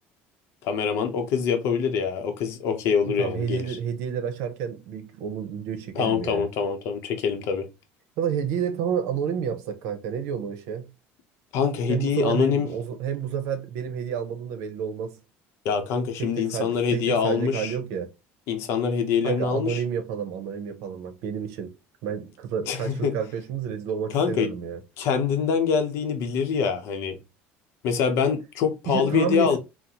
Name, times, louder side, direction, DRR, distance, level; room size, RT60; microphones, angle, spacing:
voice 1, 0.6-3.8 6.0-7.7 11.5-12.7 15.6-17.7 18.5-19.8 22.7-23.2 24.1-24.5 25.0-27.2 27.8-29.6, left 6 dB, 65° left, 0.7 m, -24 dB
voice 2, 3.1-6.5 8.2-10.9 11.9-15.2 16.2-18.1 19.2-21.7 22.0-24.8 28.9-29.6, right 8 dB, 75° right, 0.7 m, -30 dB
3.9 x 2.1 x 2.8 m
cardioid pair, 135°, 5 cm